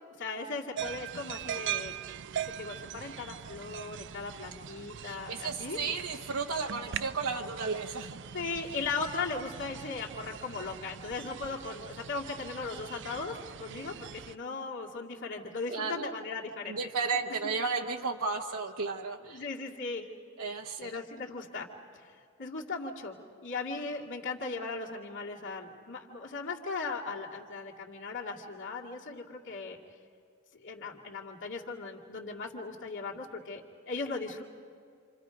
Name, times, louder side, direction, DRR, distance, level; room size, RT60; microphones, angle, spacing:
voice 1, 0.2-1.9 2.4-5.8 8.3-16.8 19.2-20.0 20.8-21.7 21.9-29.8 30.5-34.4, left 4 dB, 60° left, -3 dB, 2.3 m, -38 dB
sound 1, 0.8-14.4, right 9 dB, 60° right, 0.5 m, -41 dB
voice 2, 5.0-8.2 15.7-16.1 16.6-19.4 20.4-21.0, right 4 dB, 80° right, 0 dB, 1.0 m, -34 dB
28.5 x 28.0 x 5.1 m, 2.3 s
head